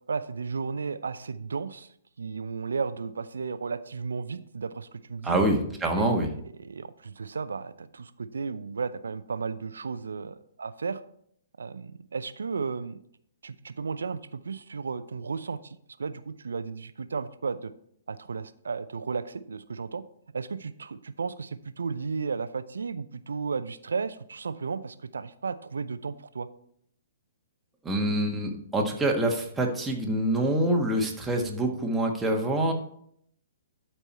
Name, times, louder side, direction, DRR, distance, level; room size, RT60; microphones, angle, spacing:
voice 1, 0.1-1.9 2.2-5.4 6.0-11.0 11.6-13.0 13.4-17.7 18.1-20.0 20.3-26.5, right 5 dB, 75° right, 13 dB, 0.6 m, -34 dB
voice 2, 5.2-6.3 27.8-32.7, right 1 dB, 10° right, 0 dB, 1.5 m, -26 dB
12.5 x 4.5 x 4.3 m, 0.68 s
figure-of-eight pair, 120°, 0 cm